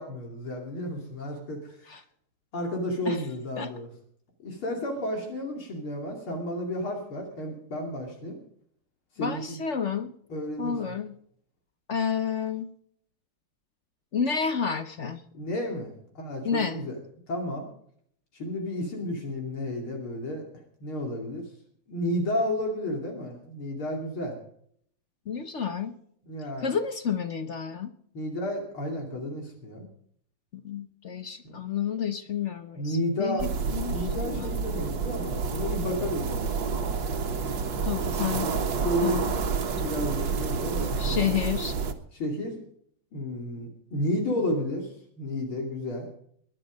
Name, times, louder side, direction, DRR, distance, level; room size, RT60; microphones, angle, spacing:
voice 1, 0.0-1.8 2.5-3.9 4.4-8.4 9.2-9.6 10.3-11.0 15.3-17.0 17.3-17.7 18.3-20.5 20.8-21.4 21.9-24.4 26.3-26.7 28.1-29.9 31.4-31.6 32.8-33.5 33.9-36.9 38.2-38.3 38.8-39.3 39.7-41.4 42.1-42.6 43.1-46.1, left 1 dB, 75° left, 1 dB, 3.5 m, -32 dB
voice 2, 9.2-10.1 10.6-11.2 11.9-12.7 14.1-15.2 16.4-16.8 25.3-25.9 26.6-27.9 30.5-34.5 37.9-38.6 39.0-39.6 41.0-41.7, left 7 dB, 55° left, 10 dB, 0.8 m, -30 dB
sound 1, 33.4-41.9, right 5 dB, 65° right, 2.0 m, -29 dB
21.5 x 11.0 x 5.2 m, 0.65 s
omnidirectional pair, 2.3 m